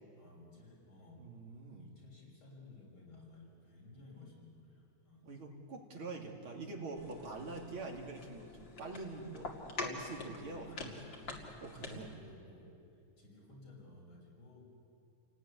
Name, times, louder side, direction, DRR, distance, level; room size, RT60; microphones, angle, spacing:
voice 1, 0.1-1.3 1.7-5.3 10.4-11.2 11.7-12.8 13.2-14.7, left 2 dB, 80° left, -3 dB, 6.7 m, -56 dB
voice 2, 1.2-1.9 5.2-10.9 11.6-12.1, right 3 dB, 80° right, 0 dB, 3.5 m, -45 dB
sound 1, 7.0-12.2, left 3 dB, 65° left, 3.0 m, -46 dB
29.0 x 18.0 x 9.7 m, 2.5 s
omnidirectional pair, 2.2 m